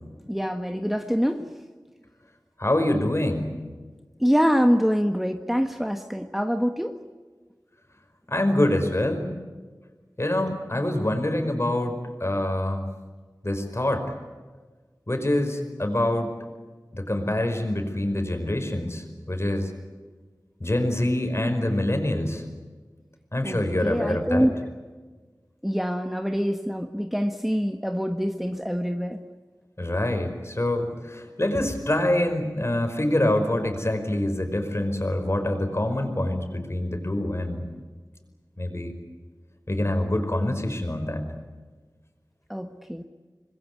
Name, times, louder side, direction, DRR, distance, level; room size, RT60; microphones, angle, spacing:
voice 1, 0.3-1.5 4.2-7.0 23.4-24.6 25.6-29.2 42.5-43.0, equal, 5° right, 6 dB, 1.4 m, -25 dB
voice 2, 2.6-3.5 8.3-9.3 10.2-12.9 13.4-14.1 15.1-16.3 16.9-19.7 20.6-22.4 23.3-24.5 29.8-37.7 38.6-38.9 39.7-41.2, left 1 dB, 40° left, 6 dB, 5.2 m, -25 dB
26.0 x 21.0 x 9.7 m, 1.4 s
wide cardioid pair, 50°, 7 cm